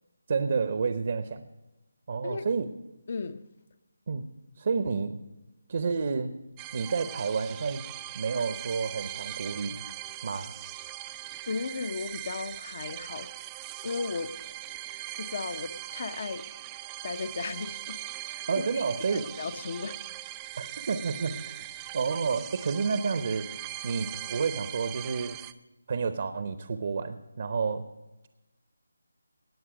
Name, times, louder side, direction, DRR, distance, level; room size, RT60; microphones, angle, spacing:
voice 1, 0.3-1.4 2.1-2.7 4.1-4.3 4.6-5.2 5.7-6.4 6.7-7.9 8.1-9.8 10.2-10.5 18.5-19.3 20.6-21.6 21.9-23.5 23.8-25.4 25.9-27.8, right 5 dB, 45° right, 10 dB, 0.7 m, -30 dB
voice 2, 3.1-3.4 11.5-13.3 13.8-14.3 15.2-16.4 17.0-18.0 18.3-18.8 19.1-20.0, left 4 dB, 45° left, 13 dB, 0.6 m, -35 dB
sound 1, 6.6-25.5, right 16 dB, 15° right, 0.4 m, -40 dB
18.5 x 7.4 x 5.0 m, 1.1 s
figure-of-eight pair, 165°, 0 cm